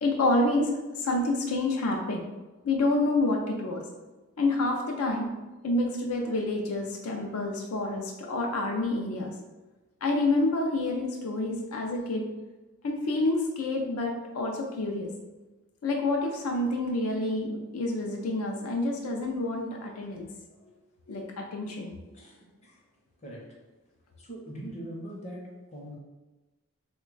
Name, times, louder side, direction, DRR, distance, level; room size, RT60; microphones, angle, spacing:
voice 1, 0.0-2.3 2.6-3.8 4.4-5.3 5.6-9.3 10.0-12.3 12.8-15.1 15.8-20.3 21.1-21.9, left 2 dB, 75° left, 1 dB, 0.4 m, -28 dB
voice 2, 22.1-22.8 23.2-23.6 24.1-25.9, right 1 dB, 30° left, -3 dB, 0.7 m, -42 dB
3.0 x 2.2 x 3.8 m, 1.1 s
head